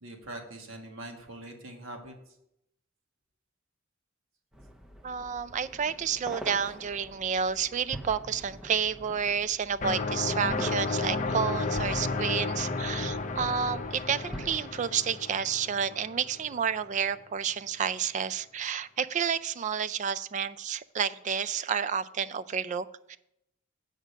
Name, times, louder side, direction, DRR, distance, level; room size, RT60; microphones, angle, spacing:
voice 1, 0.0-2.1, right 1 dB, 75° right, 3 dB, 1.5 m, -43 dB
sound 1, 4.5-14.6, right 1 dB, 5° right, 0.6 m, -44 dB
voice 2, 5.0-23.2, right 7 dB, 40° right, 15 dB, 0.3 m, -30 dB
sound 2, 9.8-16.5, left 3 dB, 40° left, 0.6 m, -32 dB
8.1 x 5.0 x 6.4 m, 0.79 s
head